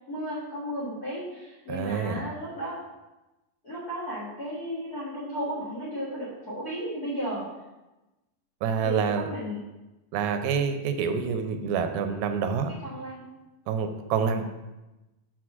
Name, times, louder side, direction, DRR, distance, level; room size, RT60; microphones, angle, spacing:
voice 1, 0.1-2.8 3.6-7.5 8.8-9.6 12.7-13.2 14.4-14.5, equal, 50° left, -5 dB, 1.1 m, -34 dB
voice 2, 1.7-2.2 8.6-9.3 10.1-12.7 13.7-14.4, right 6 dB, 85° right, 7 dB, 2.6 m, -27 dB
6.3 x 4.1 x 6.0 m, 1.0 s
omnidirectional pair, 4.3 m